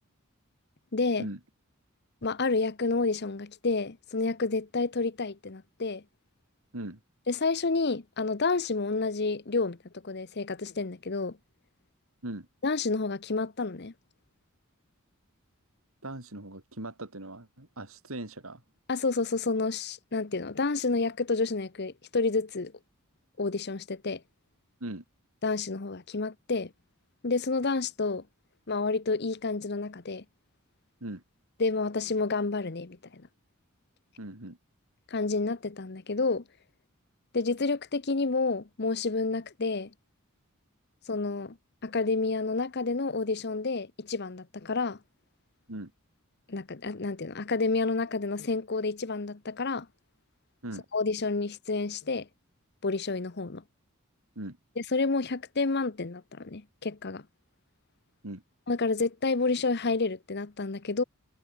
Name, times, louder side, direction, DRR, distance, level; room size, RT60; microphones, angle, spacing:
voice 1, 0.9-1.3 2.2-6.0 7.3-9.8 10.0-11.4 12.6-13.9 18.9-22.7 23.4-24.2 25.4-26.7 27.2-28.2 28.7-30.2 31.6-33.2 35.1-36.4 37.3-39.9 41.1-41.6 41.8-45.0 46.5-49.9 50.9-52.3 52.8-53.6 54.8-57.2 58.7-61.0, left 3 dB, 50° left, 1.0 m, -29 dB
voice 2, 16.0-18.6 24.8-25.0 31.0-31.2 34.2-34.6 45.7-45.9 50.6-50.8 54.4-54.6 58.2-58.4, right 1 dB, 75° right, 3.7 m, -39 dB
head